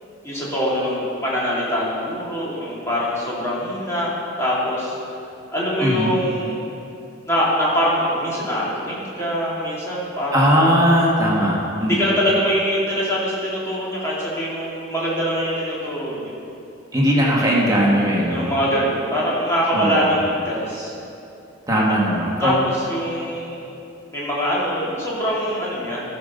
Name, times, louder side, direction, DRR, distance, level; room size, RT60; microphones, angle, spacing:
voice 1, 0.2-4.9 5.5-6.6 7.3-10.4 11.8-16.3 18.3-20.9 21.9-22.0 22.4-23.7 24.1-26.0, equal, 15° left, -8 dB, 2.4 m, -23 dB
voice 2, 5.8-6.1 10.3-12.2 16.9-18.5 19.7-20.1 21.7-22.7, equal, 20° right, -5 dB, 1.5 m, -19 dB
12.5 x 5.2 x 6.5 m, 2.7 s
head